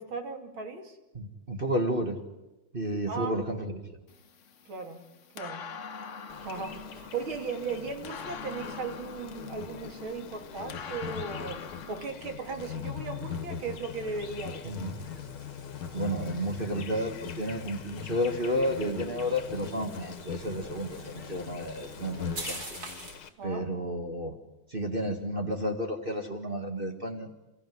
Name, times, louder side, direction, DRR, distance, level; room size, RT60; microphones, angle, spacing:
voice 1, 0.0-1.0 3.1-3.3 4.7-5.1 5.4-5.7 6.4-11.6 11.9-14.7 23.4-23.7, right 4 dB, 70° right, 4 dB, 3.5 m, -37 dB
voice 2, 1.1-2.2 2.7-3.9 14.6-15.0 15.9-22.8 23.4-24.3 24.7-27.3, equal, 25° right, 2 dB, 1.9 m, -31 dB
sound 1, 4.1-12.1, left 5 dB, 50° left, 1.0 m, -44 dB
Insect, 6.3-23.3, left 7 dB, 75° left, 2.2 m, -41 dB
sound 2, 12.6-23.3, right 2 dB, 45° right, 4.2 m, -47 dB
29.5 x 15.0 x 9.5 m, 1.0 s
omnidirectional pair, 2.3 m